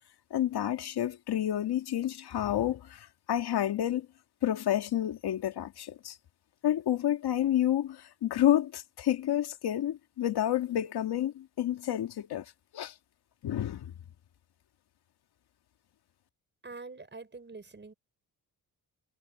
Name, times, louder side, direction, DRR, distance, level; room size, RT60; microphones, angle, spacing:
voice 1, 0.3-4.1 4.4-6.2 6.6-12.5 12.7-12.9 13.4-13.9, left 11 dB, 85° left, 2.2 m, -29 dB
voice 2, 16.6-17.9, right 3 dB, 30° right, 5.1 m, -45 dB
cardioid pair, 95°, 38 cm